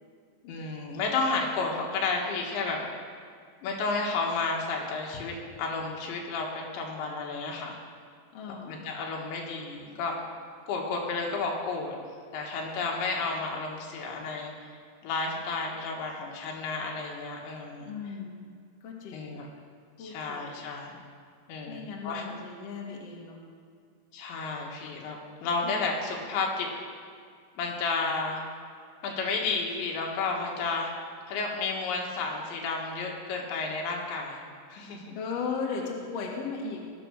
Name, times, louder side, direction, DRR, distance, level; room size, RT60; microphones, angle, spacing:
voice 1, 0.4-2.9 3.6-6.5 6.7-7.8 8.7-10.2 10.7-12.0 12.3-14.8 15.0-17.9 19.1-19.5 20.0-21.0 21.5-22.2 24.1-26.7 27.6-28.4 29.0-30.9 31.3-34.4 34.7-35.2, left 4 dB, 75° left, -1 dB, 3.9 m, -32 dB
voice 2, 8.3-8.8 17.8-18.4 18.8-19.4 20.0-20.5 21.7-23.4 35.1-36.8, left 5 dB, 60° left, -1 dB, 1.7 m, -36 dB
20.0 x 6.8 x 6.4 m, 2.2 s
omnidirectional pair, 5.4 m